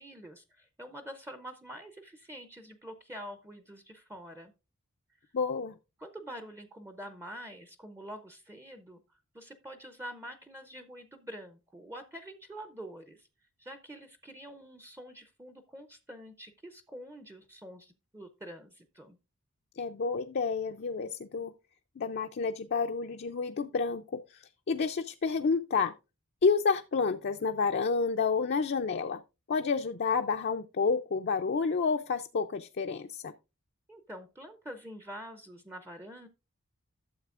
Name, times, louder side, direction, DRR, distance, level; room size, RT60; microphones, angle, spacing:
voice 1, 0.0-4.5 6.0-13.3 13.6-19.2 33.9-36.3, equal, 10° right, 0.5 m, -46 dB
voice 2, 5.3-5.8 19.8-21.5 22.0-25.9 26.4-29.2 29.5-33.3, left 5 dB, 45° left, 0.4 m, -30 dB
12.5 x 7.3 x 2.5 m
head